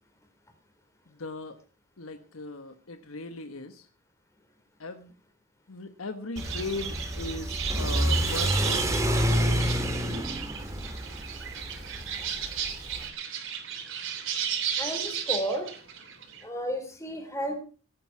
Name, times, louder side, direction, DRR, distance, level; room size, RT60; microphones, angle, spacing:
voice 1, 1.1-1.6 2.0-3.9 4.8-5.1 5.7-9.3, left 3 dB, 80° left, 8 dB, 1.2 m, -38 dB
Car / Accelerating revving vroom, 6.4-13.1, equal, 15° right, 1.9 m, -29 dB
sound 1, 6.4-16.4, right 8 dB, 65° right, 3.4 m, -34 dB
voice 2, 14.8-15.7 16.4-17.5, equal, 15° left, 5 dB, 3.6 m, -32 dB
18.5 x 8.9 x 5.9 m, 0.39 s
head